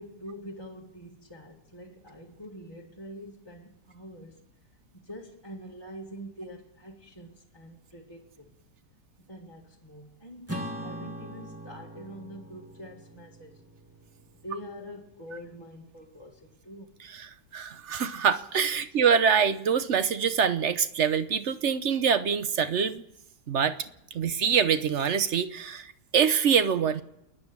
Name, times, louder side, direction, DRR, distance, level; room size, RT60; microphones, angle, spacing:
voice 1, 0.0-4.5 4.9-8.5 9.2-13.6 14.3-17.0, equal, 15° left, 1.9 m, -45 dB
Acoustic guitar / Strum, 10.5-15.2, equal, 10° right, 1.8 m, -41 dB
voice 2, 17.5-23.0 23.5-23.8 24.1-27.0, right 7 dB, 50° right, 1.0 m, -25 dB
29.5 x 10.0 x 8.6 m
omnidirectional pair, 1.9 m